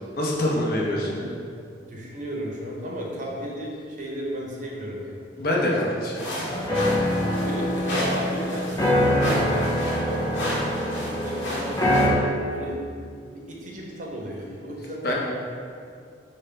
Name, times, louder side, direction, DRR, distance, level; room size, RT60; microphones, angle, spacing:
voice 1, 0.1-1.1 5.4-7.2 15.0-15.1, left 1 dB, 55° left, -3 dB, 0.6 m, -26 dB
voice 2, 1.0-1.4 1.9-5.2 6.1-6.5 7.2-11.8 12.5-12.9 13.3-15.1, right 1 dB, 45° right, -2 dB, 0.6 m, -35 dB
sound 1, 6.1-12.1, equal, 85° left, 0.8 m, -32 dB
sound 2, 6.5-12.1, equal, 15° left, 0.4 m, -24 dB
5.2 x 2.1 x 3.3 m, 2.3 s
head